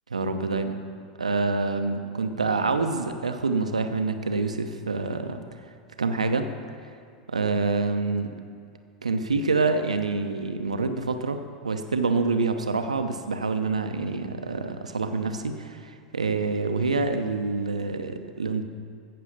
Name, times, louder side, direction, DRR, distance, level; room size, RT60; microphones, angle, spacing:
voice 1, 0.1-0.8 1.2-5.4 6.0-6.5 7.3-8.3 9.0-18.6, right 3 dB, 80° right, 7 dB, 0.9 m, -26 dB
15.5 x 6.8 x 6.7 m, 2.3 s
figure-of-eight pair, 85°, 4 cm